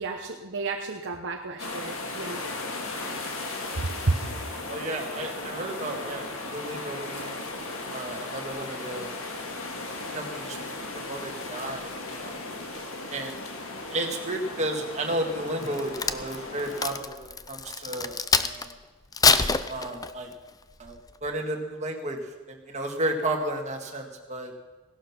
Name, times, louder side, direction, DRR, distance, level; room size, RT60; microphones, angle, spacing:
voice 1, 0.0-2.4 3.8-4.2, right 3 dB, 55° right, 3 dB, 1.0 m, -31 dB
sound 1, 1.6-16.9, left 2 dB, 65° left, 2.2 m, -36 dB
voice 2, 4.7-6.2 6.5-7.3 7.9-9.2 10.1-11.9 12.2-12.4 13.1-13.4 13.9-18.7 19.7-20.3 20.8-22.2 22.5-24.5, right 1 dB, 30° right, 2 dB, 1.9 m, -33 dB
Crack, 15.6-18.7 19.1-20.3 20.9-21.1, left 5 dB, 15° left, 0.5 m, -25 dB
17.0 x 12.0 x 5.9 m, 1.3 s
head